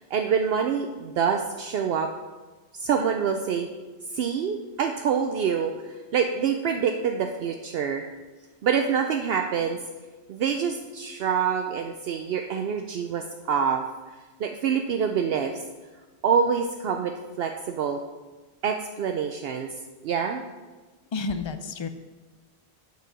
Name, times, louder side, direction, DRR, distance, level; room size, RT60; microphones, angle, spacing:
voice 1, 0.0-2.1 2.7-3.7 4.1-8.0 8.6-9.8 10.3-13.8 14.4-15.6 16.2-18.0 18.6-19.7 20.0-20.4, right 7 dB, 70° right, 4 dB, 0.8 m, -26 dB
voice 2, 21.1-21.9, left 4 dB, 40° left, 9 dB, 0.4 m, -30 dB
8.0 x 4.8 x 6.1 m, 1.3 s
omnidirectional pair, 1.1 m